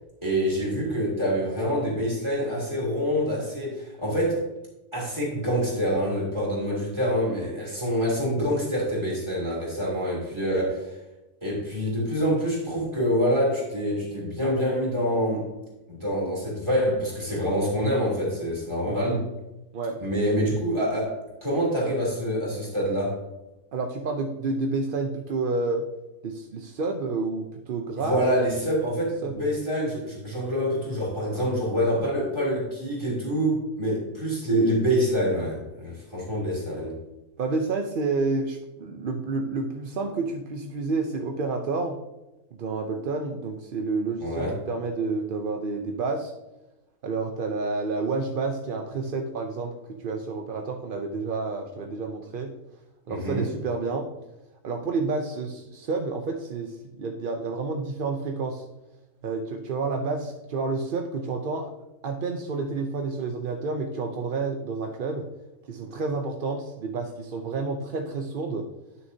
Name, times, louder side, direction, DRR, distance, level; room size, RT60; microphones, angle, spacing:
voice 1, 0.2-4.4 4.9-10.9 11.4-15.5 15.9-19.2 20.0-23.2 28.0-37.0 44.2-44.6 53.1-53.5, equal, 20° right, -5 dB, 3.2 m, -26 dB
voice 2, 18.9-19.2 19.7-20.0 23.7-25.8 26.2-28.2 29.2-29.4 30.4-30.5 37.4-42.0 42.6-46.3 47.0-49.7 50.0-52.5 53.1-54.1 54.6-58.6 59.2-61.7 62.0-65.3 65.7-68.7, right 3 dB, 55° right, 4 dB, 0.6 m, -29 dB
11.0 x 6.3 x 2.7 m, 0.97 s
omnidirectional pair, 1.6 m